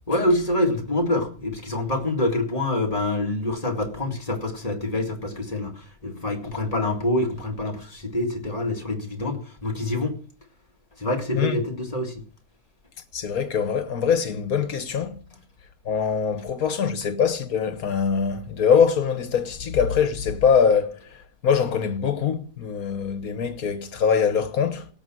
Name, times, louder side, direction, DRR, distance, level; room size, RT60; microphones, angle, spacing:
voice 1, 0.1-10.1 11.0-12.2, left 1 dB, 25° left, 2.2 m, -26 dB
voice 2, 13.1-15.2 15.8-21.2 21.4-24.9, left 7 dB, 70° left, 1.6 m, -23 dB
17.0 x 7.0 x 6.2 m
omnidirectional pair, 1.6 m